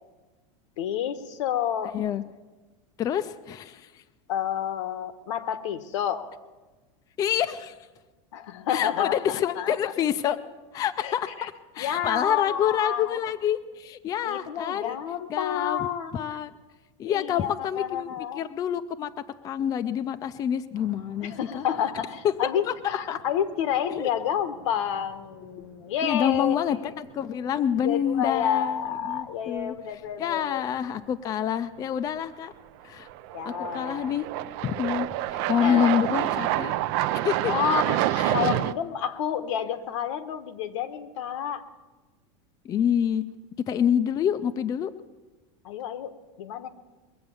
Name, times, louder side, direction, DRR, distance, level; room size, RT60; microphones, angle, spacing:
voice 1, 0.8-2.0 4.3-6.3 8.3-9.7 11.0-11.5 11.8-13.2 14.2-16.2 17.0-18.4 21.2-26.6 27.8-30.6 33.3-34.1 35.6-36.1 37.4-41.7 45.6-46.7, left 9 dB, 80° left, 10 dB, 1.2 m, -30 dB
voice 2, 1.9-2.2 3.0-4.0 7.2-7.7 8.7-10.4 10.7-15.0 15.3-15.9 16.1-16.5 17.0-19.1 19.4-21.6 22.4-22.7 23.1-23.2 23.9-24.1 26.0-29.7 30.2-32.5 32.8-33.1 33.5-34.3 34.6-36.7 37.2-37.5 38.2-38.4 42.6-43.2 43.7-44.9, left 9 dB, 25° left, 10 dB, 0.4 m, -27 dB
sound 1, 20.8-21.4 21.8-21.9 24.8-24.9 26.2-26.4 26.8-26.9 32.2-32.3 33.1-38.7, right 14 dB, 50° right, 0.5 m, -28 dB
21.5 x 7.8 x 7.0 m, 1.2 s
supercardioid pair, 155°, 15 cm